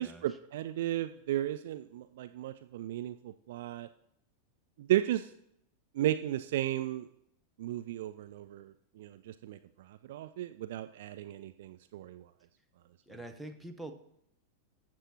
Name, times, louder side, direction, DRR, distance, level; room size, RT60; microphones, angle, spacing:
voice 1, 0.0-3.9 4.9-5.3 6.0-7.1 7.6-12.2, right 13 dB, 55° right, 11 dB, 0.3 m, -34 dB
voice 2, 13.1-13.9, right 2 dB, ahead, 4 dB, 0.9 m, -44 dB
19.5 x 7.5 x 2.9 m, 0.77 s
figure-of-eight pair, 90°, 0 cm